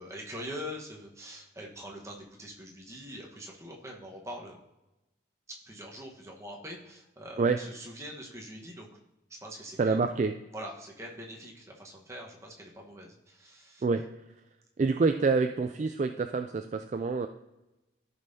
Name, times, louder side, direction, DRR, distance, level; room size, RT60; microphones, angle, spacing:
voice 1, 0.0-4.6 5.6-9.0 9.4-10.0 10.5-13.8, equal, 15° right, -1 dB, 1.2 m, -43 dB
voice 2, 9.8-10.3 13.8-14.0 14.8-17.3, right 4 dB, 40° right, 7 dB, 0.3 m, -27 dB
14.0 x 5.4 x 2.8 m, 0.98 s
head